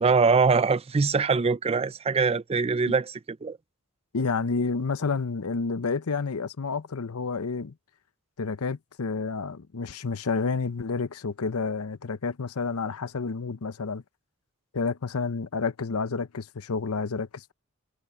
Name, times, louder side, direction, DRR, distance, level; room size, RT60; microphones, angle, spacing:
voice 1, 0.0-3.6, right 4 dB, 25° right, 0.5 m, -23 dB
voice 2, 4.1-7.7 8.4-14.0 14.7-17.5, left 4 dB, 75° left, 0.7 m, -30 dB
head